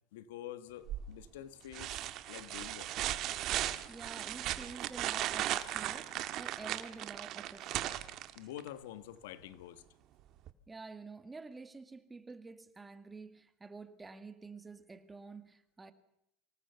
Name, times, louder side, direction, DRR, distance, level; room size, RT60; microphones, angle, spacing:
voice 1, 0.1-2.0 2.3-2.9 8.3-9.8, left 12 dB, 90° left, 1.4 m, -47 dB
sound 1, 0.9-1.3 1.7-8.7 10.5-10.6, right 13 dB, 55° right, 1.7 m, -37 dB
voice 2, 3.9-8.0 10.7-15.9, right 3 dB, 15° right, 1.9 m, -49 dB
24.5 x 19.0 x 6.9 m
supercardioid pair, 110°, 0 cm